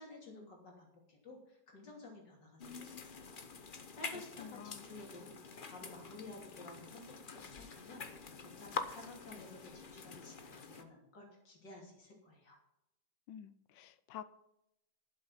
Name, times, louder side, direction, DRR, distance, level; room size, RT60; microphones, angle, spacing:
voice 1, 0.0-3.3 3.6-12.6, left 2 dB, 70° left, 0 dB, 3.8 m, -53 dB
sound 1, 2.6-10.8, left 5 dB, 40° left, 0.7 m, -46 dB
voice 2, 4.1-5.0 13.3-14.2, left 9 dB, 90° left, 15 dB, 1.4 m, -50 dB
12.0 x 7.8 x 5.8 m, 0.83 s
omnidirectional pair, 1.9 m